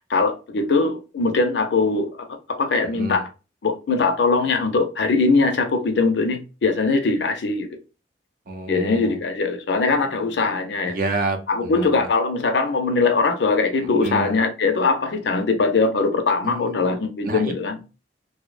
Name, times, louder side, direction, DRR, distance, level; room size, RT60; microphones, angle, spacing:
voice 1, 0.0-2.3 2.6-3.3 3.6-7.7 8.7-10.9 11.5-17.8, left 3 dB, 75° left, 0.5 m, -21 dB
voice 2, 2.9-3.2 8.5-9.2 10.9-12.1 14.0-14.4 16.4-16.9 17.2-17.5, right 2 dB, 50° right, 0.5 m, -29 dB
2.6 x 2.1 x 2.3 m
head